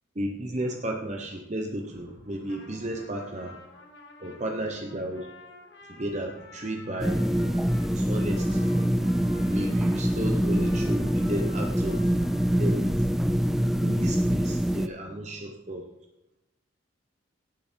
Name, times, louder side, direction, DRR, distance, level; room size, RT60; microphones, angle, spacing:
voice 1, 0.1-3.6 4.2-5.3 5.9-7.2 7.9-8.7 9.5-12.0 12.6-13.1 13.8-15.8, right 1 dB, 35° right, 2 dB, 1.0 m, -33 dB
Trumpet, 2.3-13.2, left 2 dB, 60° left, 1.9 m, -51 dB
sound 1, 7.0-14.9, equal, ahead, 0.3 m, -25 dB
17.5 x 7.0 x 4.6 m, 0.95 s
head